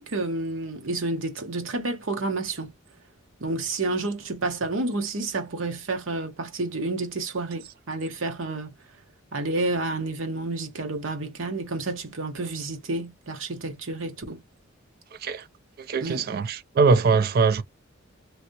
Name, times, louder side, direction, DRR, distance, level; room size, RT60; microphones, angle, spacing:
voice 1, 0.0-2.7 3.4-8.7 9.3-14.4 16.0-16.3, right 2 dB, 70° right, 1.0 m, -30 dB
voice 2, 15.9-17.6, right 4 dB, 50° right, 0.4 m, -21 dB
3.1 x 2.7 x 2.9 m
head